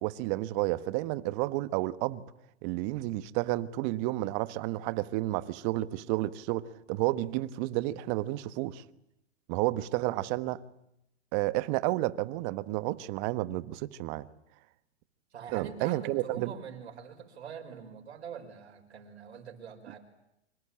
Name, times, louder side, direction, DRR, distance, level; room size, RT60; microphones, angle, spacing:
voice 1, 0.0-2.2 2.6-8.8 9.5-10.6 11.3-14.3 15.5-16.5, right 17 dB, 40° right, 1.3 m, -31 dB
voice 2, 15.3-20.0, right 7 dB, 75° right, 5.3 m, -44 dB
26.5 x 25.5 x 8.8 m
hypercardioid pair, 120°, 33 cm